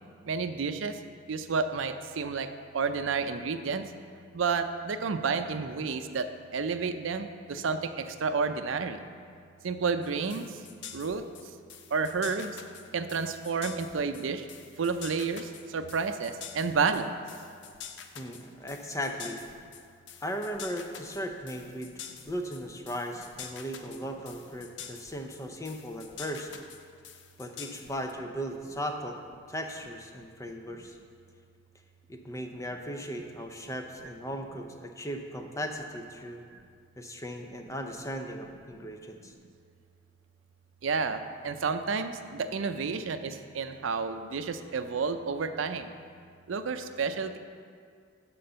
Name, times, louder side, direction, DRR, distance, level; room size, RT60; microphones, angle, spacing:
voice 1, 0.2-1.0 1.3-2.5 2.7-3.8 4.3-6.3 6.5-9.0 9.6-10.5 10.9-11.2 11.9-12.6 12.9-14.5 14.8-17.2 40.8-45.9 46.5-47.4, right 5 dB, 80° right, 9 dB, 0.5 m, -30 dB
sound 1, 10.0-28.1, left 8 dB, 65° left, 0.6 m, -46 dB
voice 2, 18.1-19.5 20.2-21.9 22.3-26.5 27.4-29.2 29.5-31.0 32.1-36.4 37.0-39.3, equal, 15° left, 4 dB, 0.5 m, -37 dB
11.0 x 3.8 x 6.7 m, 2.2 s
head